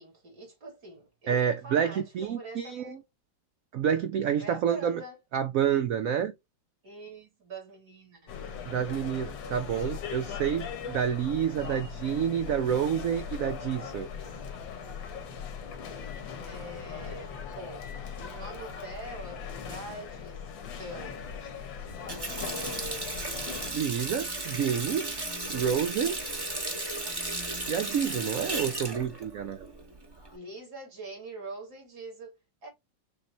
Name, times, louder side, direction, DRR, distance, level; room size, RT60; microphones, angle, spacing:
voice 1, 0.0-3.0 4.4-5.2 6.8-8.4 16.4-17.8 18.2-20.4 20.7-21.3 22.3-23.5 30.3-32.7, right 2 dB, 55° right, 3.3 m, -44 dB
voice 2, 1.3-3.0 3.7-5.0 5.3-6.3 8.7-14.1 23.7-25.1 25.5-26.2 27.7-29.7, right 8 dB, 85° right, 0.7 m, -28 dB
sound 1, 8.3-23.7, left 6 dB, 85° left, 1.8 m, -39 dB
Water tap faucet, 21.9-30.3, right 2 dB, 20° right, 0.7 m, -35 dB
6.7 x 2.4 x 3.0 m
omnidirectional pair, 2.0 m